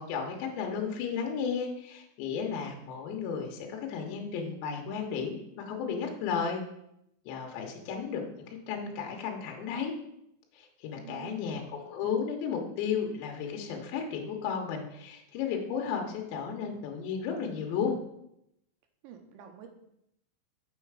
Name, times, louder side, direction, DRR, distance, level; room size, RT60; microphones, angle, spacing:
voice 1, 0.0-6.6 7.3-9.9 10.5-18.0, left 6 dB, 75° left, 2 dB, 3.2 m, -34 dB
voice 2, 11.0-11.5 19.0-19.7, right 9 dB, 80° right, 5 dB, 3.3 m, -48 dB
6.8 x 6.5 x 4.7 m, 0.78 s
omnidirectional pair, 5.3 m